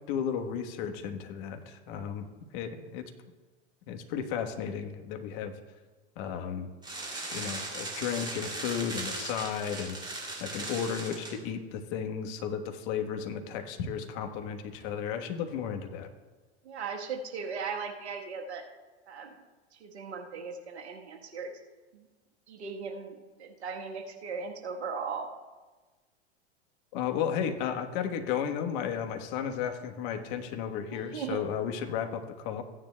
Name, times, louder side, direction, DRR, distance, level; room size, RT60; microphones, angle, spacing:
voice 1, 0.1-2.3 2.5-3.0 3.9-5.5 6.2-6.7 7.3-10.0 10.4-16.1 26.9-32.6, left 8 dB, 50° left, 6 dB, 1.2 m, -34 dB
sound 1, 6.8-11.4, right 2 dB, 15° right, 2.6 m, -38 dB
voice 2, 16.6-18.6 19.1-19.4 19.7-21.5 21.9-22.0 22.5-23.1 23.4-25.3 30.9-31.4, right 5 dB, 75° right, 3 dB, 1.3 m, -38 dB
15.5 x 9.8 x 2.2 m, 1.3 s
hypercardioid pair, 95°, 34 cm